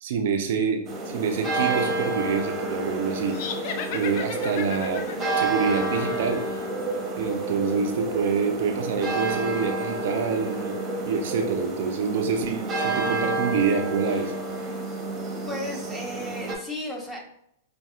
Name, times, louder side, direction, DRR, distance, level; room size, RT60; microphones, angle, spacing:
voice 1, 0.0-3.4 3.9-5.0 5.3-6.4 7.2-10.8 11.1-14.3, right 5 dB, 60° right, 4 dB, 0.5 m, -26 dB
sound 1, 0.9-16.6, right 2 dB, 25° right, 0.9 m, -29 dB
sound 2, 3.3-6.7, left 7 dB, 50° left, 0.4 m, -36 dB
voice 2, 15.5-17.2, left 1 dB, 10° left, -1 dB, 1.1 m, -34 dB
5.3 x 2.6 x 2.4 m, 0.75 s
hypercardioid pair, 105°, 0 cm